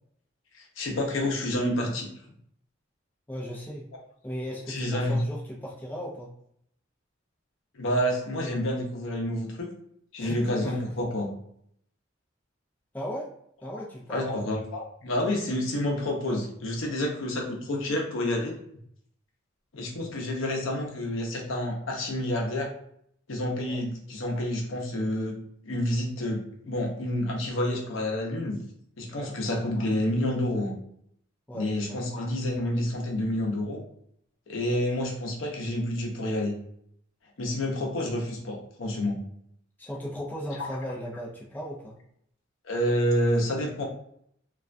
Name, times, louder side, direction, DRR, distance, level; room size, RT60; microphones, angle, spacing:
voice 1, 0.5-2.1 4.7-5.2 7.7-9.7 10.1-11.3 14.1-18.5 19.7-22.7 23.3-25.3 25.6-28.6 29.0-30.7 31.5-33.8 34.5-36.6 37.4-39.2 42.6-43.8, left 1 dB, 85° left, 0 dB, 0.6 m, -29 dB
voice 2, 3.3-3.9 4.2-6.3 10.2-10.8 12.9-13.3 13.6-14.5 23.6-23.8 29.1-29.4 31.5-32.0 39.8-42.0, equal, 10° left, -3 dB, 0.4 m, -37 dB
2.3 x 2.1 x 2.5 m, 0.69 s
head